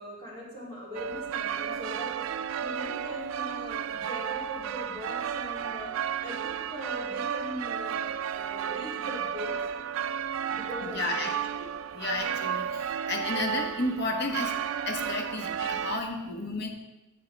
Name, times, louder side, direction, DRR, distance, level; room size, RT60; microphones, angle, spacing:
voice 1, 0.0-5.9 6.2-9.6 10.5-11.3, equal, 25° left, -7 dB, 3.2 m, -41 dB
sound 1, 0.9-16.0, right 8 dB, 70° right, 0.3 m, -33 dB
voice 2, 10.9-16.7, left 2 dB, 50° left, 3 dB, 1.2 m, -33 dB
10.0 x 7.6 x 3.4 m, 1.0 s
head